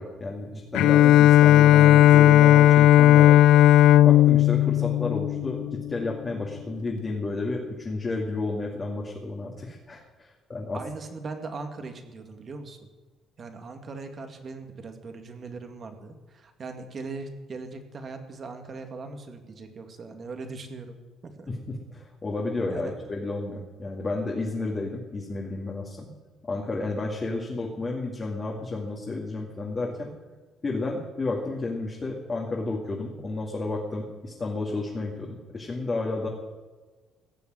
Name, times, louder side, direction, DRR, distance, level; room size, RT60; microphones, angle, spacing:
voice 1, 0.0-3.4 3.9-10.8 21.5-26.1 26.4-30.1 30.6-36.3, left 2 dB, 30° left, -2 dB, 2.5 m, -31 dB
Bowed string instrument, 0.7-6.0, left 13 dB, 90° left, 0.3 m, -16 dB
voice 2, 10.7-12.9 13.4-21.5 22.7-22.9, right 3 dB, 40° right, 5 dB, 2.2 m, -39 dB
17.0 x 7.1 x 9.2 m, 1.3 s
cardioid pair, 110°, 0 cm